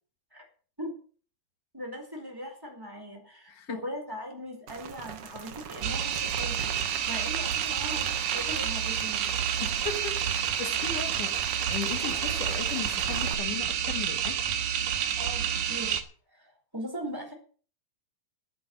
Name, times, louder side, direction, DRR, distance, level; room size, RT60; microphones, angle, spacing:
voice 1, 1.7-9.3 15.2-16.0 16.3-17.3, equal, 5° right, 4.3 m, -40 dB
voice 2, 3.5-3.8 9.6-14.4, left 7 dB, 75° left, 2.8 m, -37 dB
Rain, 4.7-13.3, right 7 dB, 55° right, 1.8 m, -40 dB
sound 1, 5.8-16.0, right 9 dB, 80° right, 3.0 m, -29 dB
11.5 x 8.8 x 8.0 m
omnidirectional pair, 3.7 m